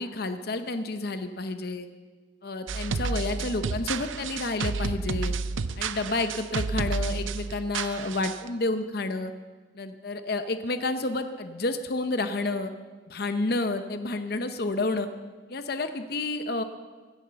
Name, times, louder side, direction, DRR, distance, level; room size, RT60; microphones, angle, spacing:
voice 1, 0.0-1.9 2.4-5.3 5.8-9.3 9.7-12.7 13.1-15.1 15.5-16.6, left 2 dB, 50° left, 9 dB, 0.7 m, -30 dB
sound 1, 2.7-8.5, right 4 dB, 85° right, 0.6 m, -31 dB
16.0 x 11.0 x 7.0 m, 1.4 s
head